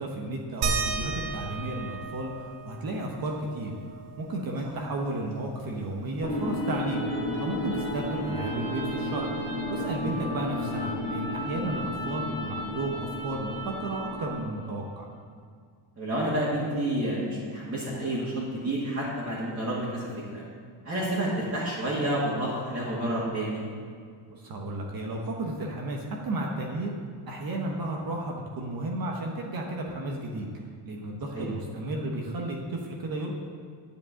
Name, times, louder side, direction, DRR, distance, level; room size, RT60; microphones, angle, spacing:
voice 1, 0.0-15.1 24.3-27.0 27.3-33.3, right 2 dB, 45° right, 0 dB, 1.2 m, -33 dB
sound 1, 0.6-5.7 6.1-6.2 6.5-8.3 9.5-9.6 10.4-10.5, right 4 dB, 70° right, 1.7 m, -36 dB
sound 2, 6.2-14.4, left 1 dB, 15° left, 2.7 m, -32 dB
voice 2, 9.8-10.2 16.0-20.4 20.8-23.6 31.3-31.5, right 1 dB, 25° right, -8 dB, 2.2 m, -30 dB
10.0 x 5.2 x 7.8 m, 2.1 s
cardioid pair, 150°, 50 cm